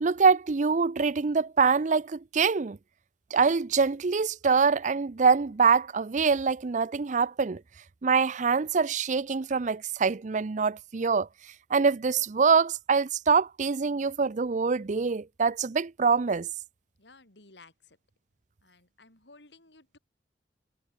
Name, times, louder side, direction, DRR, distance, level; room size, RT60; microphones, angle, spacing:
voice 1, 0.0-2.8 3.3-7.6 8.0-11.3 11.7-16.5, right 5 dB, 45° right, 0.5 m, -24 dB
voice 2, 17.0-18.0 18.6-20.0, left 3 dB, 80° left, 5.1 m, -56 dB
head